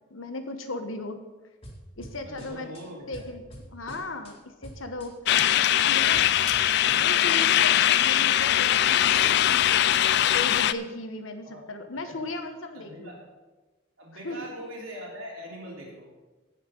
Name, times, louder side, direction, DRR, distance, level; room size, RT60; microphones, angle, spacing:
voice 1, 0.1-1.2 2.0-2.7 3.1-3.4 3.7-5.1 5.6-6.2 6.9-9.6 10.3-13.1 14.2-14.4, left 2 dB, 75° left, 7 dB, 1.3 m, -36 dB
sound 1, 1.6-2.8 3.1-4.3 4.6-5.1 5.4-7.3, equal, 25° left, 2.1 m, -45 dB
voice 2, 2.3-3.3 11.4-11.7 12.0-12.2 12.7-13.2 14.0-16.1, equal, 80° right, -3 dB, 3.7 m, -41 dB
sound 2, 5.3-10.7, left 12 dB, 55° left, 0.4 m, -21 dB
16.5 x 5.8 x 5.5 m, 1.2 s
head